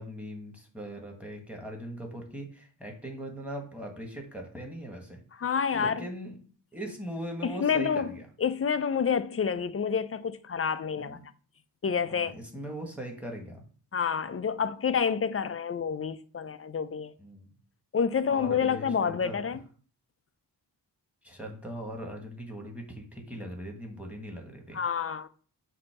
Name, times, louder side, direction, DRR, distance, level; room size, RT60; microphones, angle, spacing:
voice 1, 0.0-5.2 5.7-6.4 6.7-8.3 11.0-11.2 11.9-13.6 17.2-17.5 18.3-19.4 21.2-24.8, equal, 5° right, 1.6 m, -40 dB
voice 2, 5.4-6.1 7.4-8.1 8.4-11.2 11.8-12.4 13.9-17.1 17.9-19.6 24.7-25.3, left 6 dB, 35° left, 0.4 m, -28 dB
7.5 x 2.8 x 5.9 m
wide cardioid pair, 125°, 43 cm